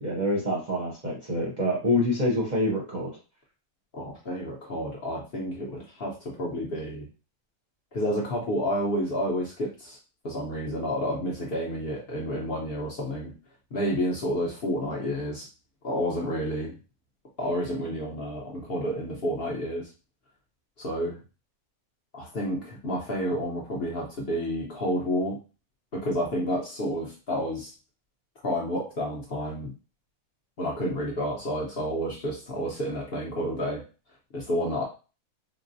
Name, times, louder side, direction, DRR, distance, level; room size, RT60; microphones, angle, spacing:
voice 1, 0.0-3.1, left 1 dB, 40° right, -3 dB, 0.6 m, -26 dB
voice 2, 3.9-7.1 7.9-10.0 10.2-13.3 13.7-15.5 15.8-16.7 17.4-19.9 20.8-21.2 22.1-25.4 25.9-27.7 28.4-29.7 30.6-33.8 34.3-34.8, equal, 50° left, -3 dB, 0.9 m, -30 dB
3.8 x 2.1 x 2.6 m, 0.33 s
omnidirectional pair, 1.5 m